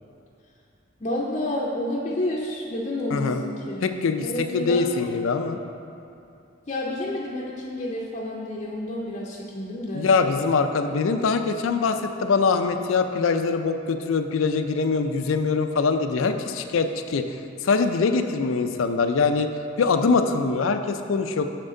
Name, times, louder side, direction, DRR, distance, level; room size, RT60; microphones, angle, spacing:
voice 1, 1.0-3.9 4.2-4.8 6.7-10.1, left 1 dB, 35° left, -4 dB, 0.5 m, -29 dB
voice 2, 3.1-3.4 3.8-4.3 4.5-5.6 9.9-17.3 17.6-19.5 19.8-21.5, left 4 dB, 85° left, 7 dB, 0.4 m, -23 dB
6.5 x 6.5 x 3.8 m, 2.7 s
head